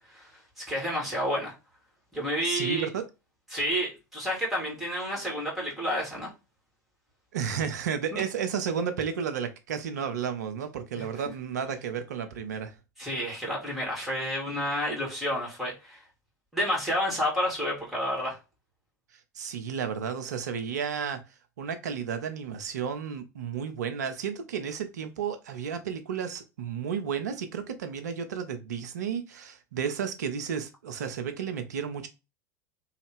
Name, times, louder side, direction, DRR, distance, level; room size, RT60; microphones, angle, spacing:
voice 1, 0.0-1.5 2.1-2.9 3.5-6.3 8.1-8.2 11.0-11.1 13.0-16.0 16.5-18.4, equal, ahead, 1.7 m, -30 dB
voice 2, 2.4-3.0 7.3-12.7 19.3-21.2 21.6-32.1, right 7 dB, 70° right, 0.6 m, -32 dB
3.0 x 2.4 x 3.4 m
figure-of-eight pair, 80°, 9 cm